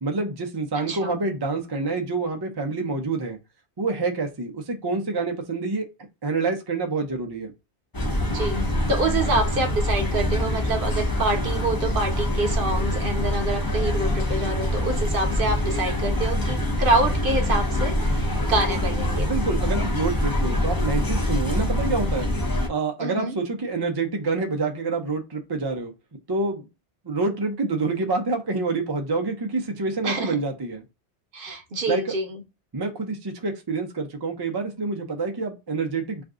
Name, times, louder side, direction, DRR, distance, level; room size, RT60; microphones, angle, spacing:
voice 1, 0.0-3.4 3.8-5.9 6.2-7.5 19.2-22.3 22.7-25.9 26.3-26.6 27.0-30.8 31.9-32.1 32.7-36.2, right 3 dB, 35° right, 0.4 m, -27 dB
voice 2, 0.8-1.2 8.3-19.4 23.0-23.3 30.0-30.4 31.3-32.4, right 2 dB, 55° right, 0.9 m, -26 dB
sound 1, 7.9-22.7, left 1 dB, 25° left, 0.5 m, -24 dB
2.6 x 2.5 x 3.4 m
omnidirectional pair, 1.1 m